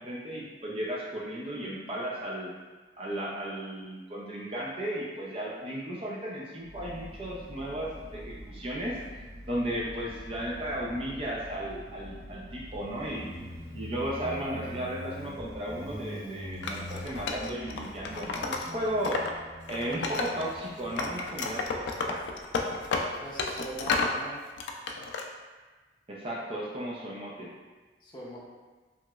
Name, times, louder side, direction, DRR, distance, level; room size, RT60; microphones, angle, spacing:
voice 1, 0.0-2.5 3.0-9.0 9.5-13.3 13.7-19.3 19.7-22.2 26.1-27.5, equal, 30° right, -5 dB, 0.4 m, -35 dB
Motorcycle, 6.6-23.9, equal, 70° right, 1.2 m, -45 dB
Wood, 16.6-19.3 19.6-20.6 21.0-24.2 24.6-25.2, left 3 dB, 80° left, 0.3 m, -32 dB
voice 2, 19.9-20.2 23.2-24.4 28.0-28.4, right 1 dB, 25° left, -6 dB, 0.6 m, -41 dB
2.9 x 2.9 x 2.3 m, 1.3 s
head